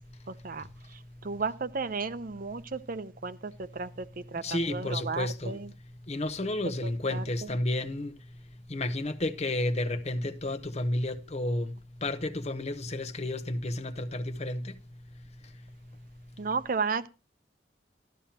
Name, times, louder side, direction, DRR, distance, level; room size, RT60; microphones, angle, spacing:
voice 1, 0.3-5.7 6.8-7.5 16.4-17.1, right 4 dB, 50° right, 0.7 m, -34 dB
voice 2, 4.4-5.6 6.1-8.1 8.7-11.7 12.0-14.7, left 1 dB, 40° left, 1.0 m, -31 dB
13.0 x 12.0 x 2.9 m
head